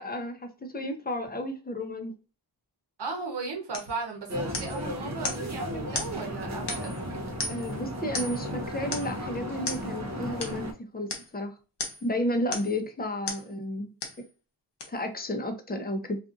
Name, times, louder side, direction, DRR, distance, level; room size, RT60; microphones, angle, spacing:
voice 1, 0.0-2.1 7.5-11.1 11.3-11.5 12.0-13.9 14.9-16.2, left 1 dB, 20° left, 0.6 m, -32 dB
voice 2, 3.0-7.4, right 4 dB, 60° right, 1.1 m, -36 dB
sound 1, 3.7-4.0 4.5-4.8 5.2-5.5 5.9-6.2 6.7-7.0 7.4-7.7 8.1-8.5 8.9-9.2 9.7-9.9 10.4-10.6 11.1-11.3 11.8-12.1 12.5-12.8 13.3-13.5 14.0-14.2 14.8-14.9, left 3 dB, 60° left, 0.8 m, -35 dB
sound 2, 4.3-10.7, equal, 35° right, 0.7 m, -35 dB
2.6 x 2.4 x 2.4 m
cardioid pair, 50°, 45 cm